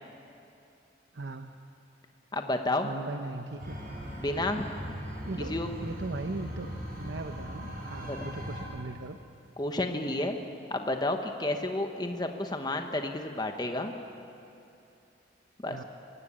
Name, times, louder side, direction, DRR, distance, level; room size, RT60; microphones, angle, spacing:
voice 1, 1.1-1.6 2.8-3.8 5.3-5.5 5.8-6.7 7.0-9.2 15.7-15.8, right 3 dB, 70° right, 7 dB, 0.8 m, -38 dB
voice 2, 2.3-2.9 4.2-4.6 5.5-5.7 8.1-8.3 9.6-10.4 10.7-13.9 15.6-15.8, left 2 dB, 20° left, 5 dB, 1.1 m, -31 dB
sound 1, 3.6-8.6, equal, 55° right, 5.7 m, -39 dB
22.5 x 17.0 x 8.7 m, 2.7 s
head